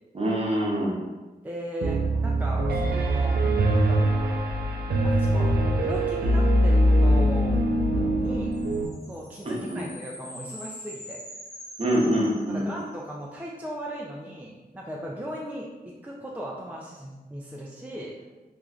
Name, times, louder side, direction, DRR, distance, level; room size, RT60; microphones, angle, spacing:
voice 1, 0.1-1.0 9.4-9.9 11.8-12.7, equal, 40° right, -4 dB, 0.7 m, -25 dB
voice 2, 1.4-4.4 5.0-7.6 8.0-8.6 9.1-11.2 12.5-18.2, equal, 10° right, -3 dB, 0.3 m, -37 dB
Piano, 1.8-8.9, right 1 dB, 75° right, 0.4 m, -22 dB
sound 1, 8.5-13.1, left 1 dB, 45° left, 1.2 m, -44 dB
3.0 x 2.4 x 2.3 m, 1.2 s
wide cardioid pair, 85°, 16 cm